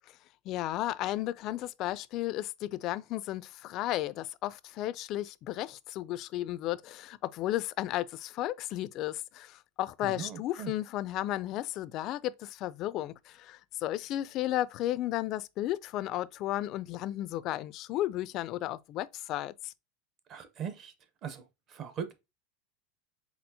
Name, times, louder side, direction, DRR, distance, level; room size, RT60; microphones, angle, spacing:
voice 1, 0.5-19.7, left 14 dB, 40° left, 0.3 m, -34 dB
voice 2, 10.0-10.7 20.3-20.9 21.2-21.4 21.7-22.3, right 7 dB, 35° right, 0.7 m, -39 dB
4.3 x 4.0 x 2.7 m
supercardioid pair, 140°, 0 cm